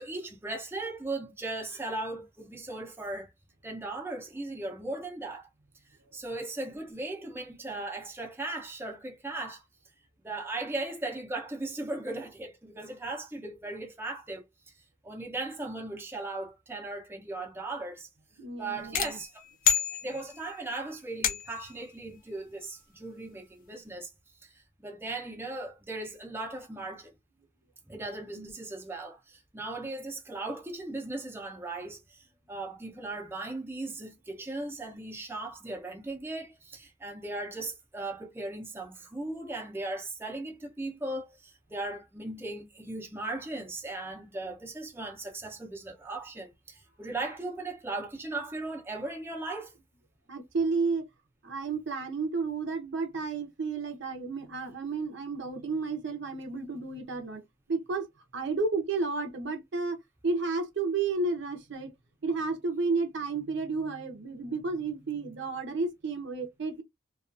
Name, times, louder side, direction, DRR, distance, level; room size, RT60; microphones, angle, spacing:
voice 1, 0.0-3.3 3.6-5.5 6.1-9.6 10.2-14.4 15.0-18.1 18.6-27.1 27.9-49.7, right 2 dB, 10° right, 0.6 m, -38 dB
voice 2, 18.4-19.2 19.7-19.8 28.4-28.5 50.3-51.1 51.4-57.4 57.7-58.1 58.3-60.0 60.2-61.9 62.2-66.8, right 4 dB, 65° right, 0.7 m, -32 dB
sound 1, 18.9-20.6 21.2-21.8, left 9 dB, 45° left, 0.4 m, -29 dB
2.4 x 2.3 x 2.4 m
head